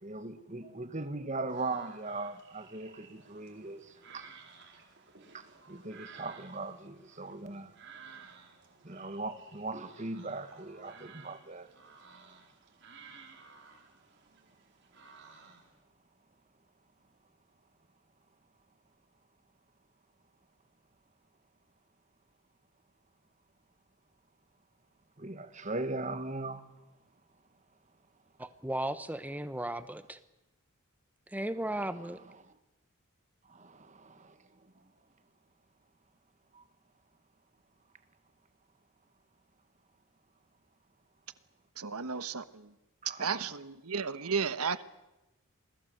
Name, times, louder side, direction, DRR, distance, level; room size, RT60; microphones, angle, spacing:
voice 1, 0.0-4.3 5.3-7.7 8.8-11.7 25.2-26.6 32.0-32.2 33.5-34.4 36.5-36.6 42.0-42.1 43.0-43.5, right 2 dB, 30° right, 1.6 m, -39 dB
sound 1, 1.5-15.8, right 5 dB, 50° right, 4.5 m, -55 dB
voice 2, 28.4-30.2 31.3-32.2, right 1 dB, 5° right, 1.0 m, -35 dB
voice 3, 41.8-42.7 43.0-44.8, right 5 dB, 80° right, 1.3 m, -34 dB
28.5 x 21.0 x 7.9 m
head